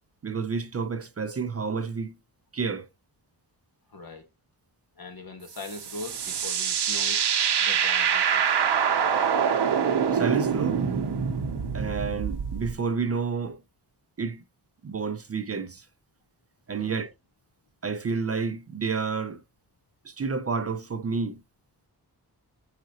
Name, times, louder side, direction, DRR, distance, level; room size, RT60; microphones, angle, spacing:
voice 1, 0.2-2.1 2.5-2.9 10.1-10.8 11.7-13.6 14.2-14.4 14.8-15.9 16.7-17.1 17.8-19.4 20.0-21.4, right 5 dB, 40° right, 0.4 m, -30 dB
voice 2, 3.9-4.3 5.0-7.3 7.6-8.6 16.8-17.1, left 3 dB, 60° left, 1.2 m, -41 dB
sound 1, 5.6-12.7, right 7 dB, 75° right, 0.7 m, -25 dB
5.0 x 3.8 x 2.8 m
wide cardioid pair, 135°, 41 cm